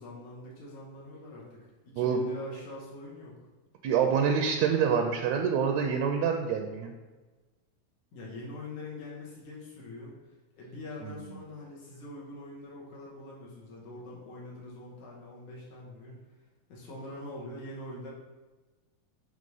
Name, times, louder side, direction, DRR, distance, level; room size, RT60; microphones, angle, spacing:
voice 1, 0.0-1.6 1.9-3.4 8.1-10.1 10.5-16.2 16.7-18.1, left 2 dB, 75° left, -5 dB, 2.8 m, -43 dB
voice 2, 3.8-6.9, right 7 dB, 80° right, 4 dB, 1.7 m, -26 dB
6.6 x 3.3 x 5.4 m, 1.3 s
omnidirectional pair, 3.4 m